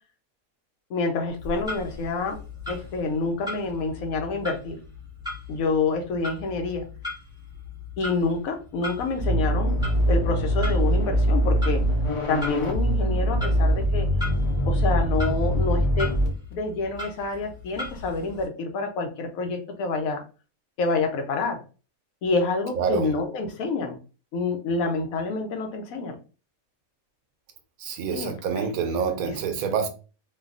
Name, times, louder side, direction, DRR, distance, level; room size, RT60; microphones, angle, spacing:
voice 1, 0.9-2.4 2.7-4.8 5.5-6.8 8.0-9.8 10.1-11.8 12.3-14.1 14.6-20.2 20.8-21.6 22.2-24.0 24.3-26.2 28.1-28.7 29.2-29.3, left 3 dB, 80° left, 1.1 m, -27 dB
Clock, 1.3-18.4, left 2 dB, 5° right, 0.8 m, -39 dB
sound 1, 9.2-16.3, equal, 40° left, 0.4 m, -23 dB
voice 2, 22.8-23.1 27.8-29.9, right 6 dB, 90° right, 1.1 m, -27 dB
3.3 x 2.2 x 2.4 m
omnidirectional pair, 1.5 m